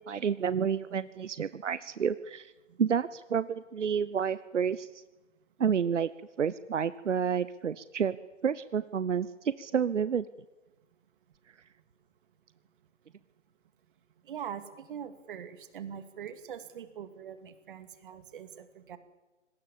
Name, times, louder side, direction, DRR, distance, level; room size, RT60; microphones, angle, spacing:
voice 1, 0.0-2.5 2.8-4.9 5.6-6.1 6.4-8.2 8.4-10.2, right 7 dB, 75° right, 16 dB, 1.0 m, -29 dB
voice 2, 14.3-19.0, right 8 dB, 45° right, 11 dB, 2.5 m, -42 dB
25.0 x 19.0 x 7.3 m, 1.1 s
hypercardioid pair, 145°, 37 cm